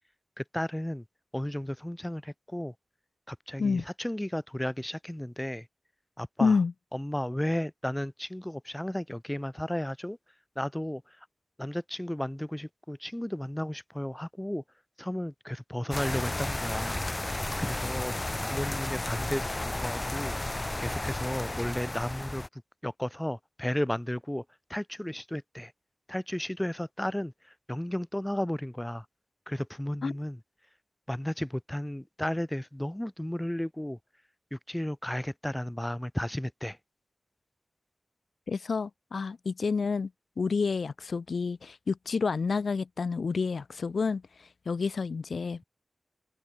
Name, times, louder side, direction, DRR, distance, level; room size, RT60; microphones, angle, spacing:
voice 1, 0.4-1.0 1.3-2.7 3.3-5.7 6.2-6.6 6.9-10.2 10.6-11.0 11.6-14.6 15.0-17.0 17.6-18.1 18.4-20.4 20.8-22.4 22.8-24.4 24.7-25.7 26.1-27.3 27.7-29.0 29.5-30.4 31.1-34.0 34.5-36.8, left 1 dB, 10° left, 2.2 m, -33 dB
voice 2, 6.4-6.7 30.0-30.1 38.5-40.1 40.4-45.6, left 5 dB, 90° left, 0.8 m, -29 dB
sound 1, 15.9-22.5, left 2 dB, 25° left, 0.4 m, -33 dB
wide cardioid pair, 75°, 0 cm